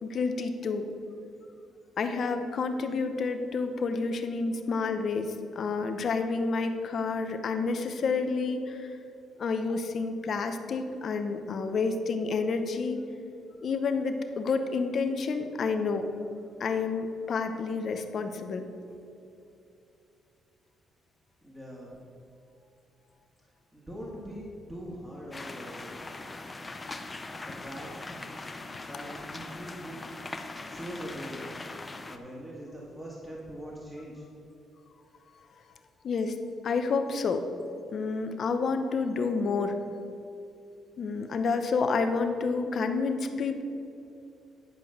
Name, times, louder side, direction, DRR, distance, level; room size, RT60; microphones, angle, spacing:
voice 1, 0.0-0.9 2.0-8.9 9.4-13.0 13.6-16.1 16.6-18.7 26.9-27.0 36.0-37.5 37.9-39.8 41.0-43.6, left 4 dB, 55° left, 7 dB, 0.8 m, -29 dB
voice 2, 21.4-22.0 23.4-26.1 27.4-28.2 28.8-30.0 30.7-31.7 32.1-34.3, equal, 15° right, -4 dB, 2.0 m, -42 dB
sound 1, 25.3-32.2, left 2 dB, 20° left, 0.7 m, -41 dB
10.5 x 5.2 x 6.5 m, 2.7 s
cardioid pair, 90°, 0 cm